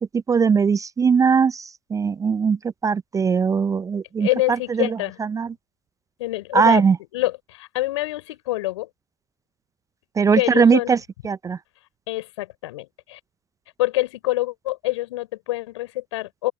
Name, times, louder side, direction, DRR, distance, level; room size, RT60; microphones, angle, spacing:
voice 1, 0.0-4.3 4.8-4.9 5.3-5.5 6.5-7.0 10.2-11.0 11.2-11.6, right 6 dB, 20° right, 0.5 m, -20 dB
voice 2, 4.2-5.2 6.2-6.8 7.1-8.9 10.3-10.9 12.1-13.2 13.8-16.5, left 17 dB, 70° left, 4.7 m, -26 dB
open air
hypercardioid pair, 75°, 16 cm